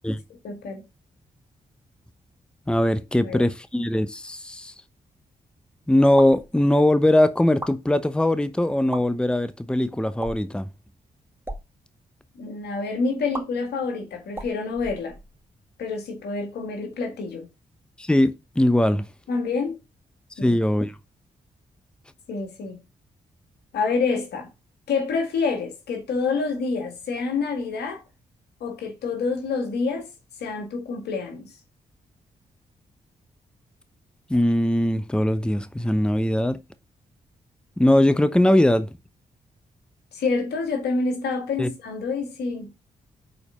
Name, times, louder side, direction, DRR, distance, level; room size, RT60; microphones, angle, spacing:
voice 1, 0.4-0.8 3.2-3.5 12.4-15.2 15.8-17.5 19.3-19.8 20.4-20.6 22.3-22.8 23.7-24.5 24.9-28.0 28.6-30.1 30.4-31.5 40.1-42.7, left 4 dB, 80° left, 1.9 m, -27 dB
voice 2, 2.7-4.7 5.9-10.7 18.0-19.0 20.4-20.9 34.3-36.6 37.8-38.9 41.6-41.7, left 1 dB, 5° left, 0.9 m, -20 dB
sound 1, 6.1-6.5 7.4-7.8 8.8-9.0 10.2-10.5 11.3-11.6 13.3-13.4 14.3-15.5, right 1 dB, 15° right, 2.0 m, -36 dB
6.6 x 4.4 x 5.5 m
hypercardioid pair, 40°, 17 cm